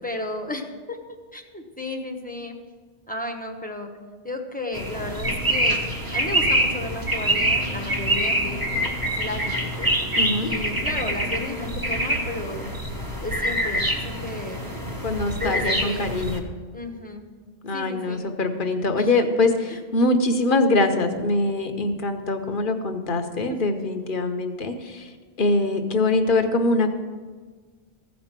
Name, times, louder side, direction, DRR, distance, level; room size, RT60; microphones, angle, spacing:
voice 1, 0.0-1.0 1.3-2.6 3.1-3.9 4.2-5.8 6.1-9.9 10.4-12.7 13.2-14.7 15.4-16.1 16.7-17.3 17.7-18.3 19.0-19.1 19.7-19.8, left 2 dB, 10° left, 2 dB, 1.0 m, -33 dB
sound 1, 4.7-16.4, right 1 dB, 20° right, 1.2 m, -25 dB
voice 2, 10.2-10.5 15.0-16.5 17.6-26.9, left 2 dB, 55° left, 6 dB, 1.1 m, -23 dB
15.0 x 5.3 x 7.4 m, 1.5 s
omnidirectional pair, 1.0 m